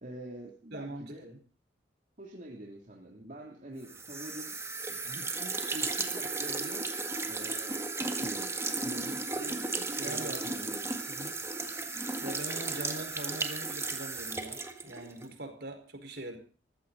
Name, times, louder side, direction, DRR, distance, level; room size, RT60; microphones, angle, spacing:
voice 1, 0.0-1.3 2.2-4.6 4.9-6.9 7.2-10.9, right 1 dB, 45° right, -1 dB, 2.9 m, -46 dB
voice 2, 0.7-1.4 9.4-9.5 10.0-10.7 11.1-11.4 12.2-16.4, right 1 dB, 60° right, 5 dB, 4.9 m, -42 dB
sound 1, 3.9-15.3, right 3 dB, 15° right, 1.7 m, -35 dB
21.0 x 15.5 x 4.1 m, 0.40 s
head